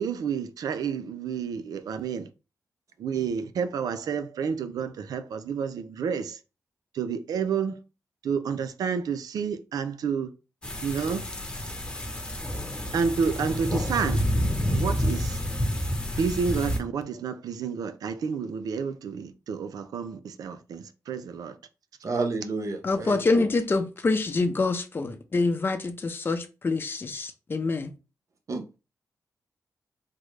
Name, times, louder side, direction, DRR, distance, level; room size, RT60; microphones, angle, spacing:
voice 1, 0.0-2.3 3.0-6.4 6.9-7.8 8.2-10.3 10.8-11.3 12.9-14.3 14.7-15.4 16.2-21.6, right 6 dB, 85° right, 0.4 m, -30 dB
sound 1, 10.6-16.8, equal, 15° left, 1.0 m, -29 dB
voice 2, 22.0-23.5 28.5-28.6, right 3 dB, 55° right, 0.7 m, -30 dB
voice 3, 22.8-27.9, left 3 dB, 35° left, 0.5 m, -26 dB
3.6 x 2.1 x 3.2 m
cardioid pair, 70°, 6 cm